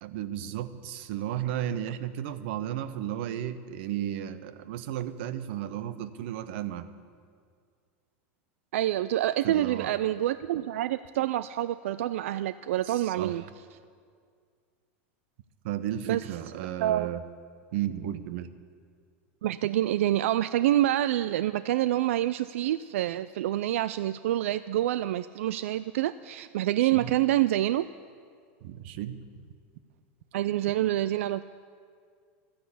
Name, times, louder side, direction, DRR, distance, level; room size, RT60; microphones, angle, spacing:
voice 1, 0.0-6.9 9.4-9.9 12.8-13.4 15.6-17.2 17.7-18.5 26.8-27.1 28.6-29.2, right 11 dB, 60° right, 14 dB, 0.8 m, -34 dB
voice 2, 8.7-13.4 16.1-16.2 16.8-17.1 19.4-27.9 30.3-31.4, right 13 dB, 90° right, 15 dB, 0.3 m, -27 dB
13.0 x 10.0 x 8.4 m, 2.1 s
supercardioid pair, 155°, 7 cm